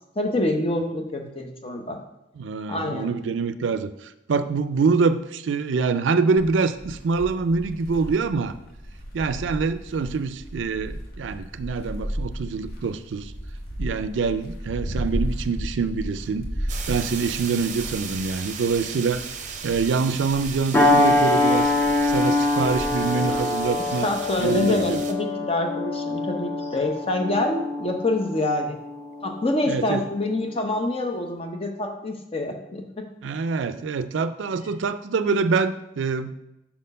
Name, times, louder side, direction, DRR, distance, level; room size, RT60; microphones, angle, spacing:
voice 1, 0.2-2.0 2.7-3.1 24.0-28.8 29.2-33.1, left 1 dB, 30° left, 4 dB, 0.8 m, -26 dB
voice 2, 2.4-8.5 9.1-13.3 13.8-16.5 16.9-19.2 19.6-21.7 22.0-24.1 24.4-25.0 29.7-30.0 33.2-36.3, right 4 dB, 85° right, 12 dB, 0.4 m, -25 dB
sound 1, 6.4-24.9, equal, 55° left, 1.4 m, -35 dB
sound 2, 16.7-25.1, right 7 dB, 40° right, 0.6 m, -36 dB
sound 3, 20.7-29.6 30.1-30.3, left 2 dB, 10° left, 1.1 m, -24 dB
5.8 x 4.3 x 5.3 m, 0.91 s
head